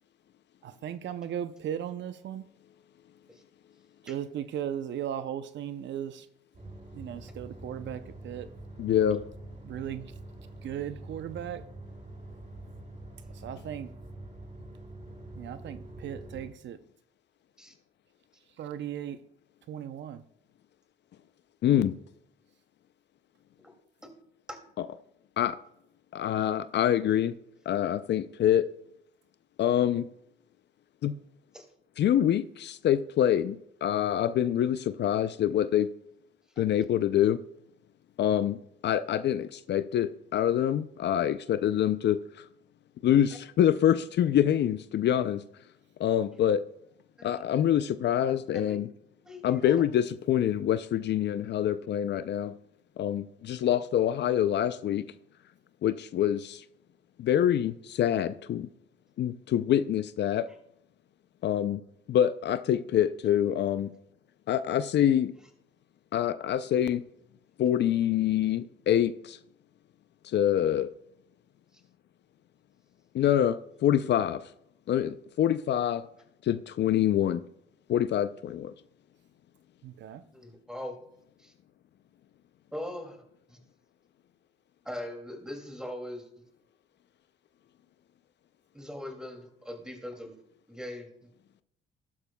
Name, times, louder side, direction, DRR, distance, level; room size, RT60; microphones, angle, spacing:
voice 1, 0.6-2.5 4.0-6.3 6.9-8.5 9.6-10.1 10.6-11.7 13.3-13.9 15.3-16.8 18.6-19.2 19.7-20.2 79.8-80.2, right 10 dB, 70° right, 0.6 m, -37 dB
sound 1, 6.5-16.5, right 1 dB, 40° right, 3.7 m, -45 dB
voice 2, 8.8-9.2 21.6-21.9 24.8-24.9 25.4-25.6 26.1-27.3 27.7-28.7 29.6-30.1 31.0-31.2 32.0-35.9 36.6-37.4 38.2-38.6 38.8-42.2 43.0-45.4 46.0-46.6 47.2-48.9 49.4-52.6 53.0-55.1 55.8-56.6 57.2-58.7 59.2-60.5 61.4-61.8 62.1-63.9 64.5-65.3 66.1-67.0 67.6-69.4 70.2-70.9 73.1-74.4 74.9-76.0 76.4-77.4 77.9-78.7, left 10 dB, 60° left, 0.5 m, -26 dB
voice 3, 49.2-49.8 71.7-71.8 80.3-81.0 81.4-81.5 82.7-83.2 83.5-83.6 84.8-86.3 88.7-90.3 90.7-91.3, left 1 dB, 5° right, 2.4 m, -41 dB
13.5 x 12.0 x 2.3 m
cardioid pair, 90°, 20 cm